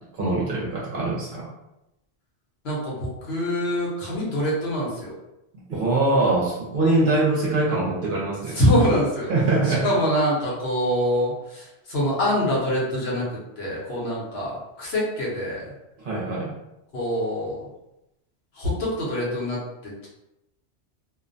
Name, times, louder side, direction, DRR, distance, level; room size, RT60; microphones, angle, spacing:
voice 1, 0.1-1.5 5.5-8.6 9.3-9.9 16.0-16.5, right 2 dB, 55° right, -5 dB, 0.8 m, -23 dB
voice 2, 2.6-5.1 8.5-9.3 9.7-13.2 13.6-15.7 16.9-17.6 18.5-20.1, equal, 65° left, -5 dB, 1.0 m, -25 dB
2.4 x 2.2 x 2.5 m, 0.91 s
omnidirectional pair, 1.2 m